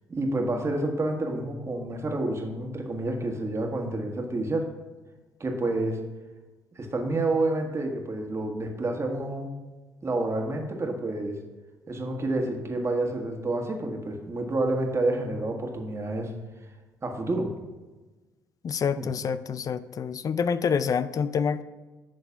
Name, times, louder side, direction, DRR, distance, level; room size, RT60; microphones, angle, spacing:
voice 1, 0.1-4.7 5.4-6.0 6.7-9.5 10.0-11.4 11.9-16.3 17.0-17.5 19.0-19.1, right 2 dB, 35° right, 2 dB, 1.7 m, -29 dB
voice 2, 18.6-21.6, left 6 dB, 45° left, 15 dB, 0.4 m, -27 dB
11.0 x 3.9 x 5.8 m, 1.2 s
hypercardioid pair, 50°, 8 cm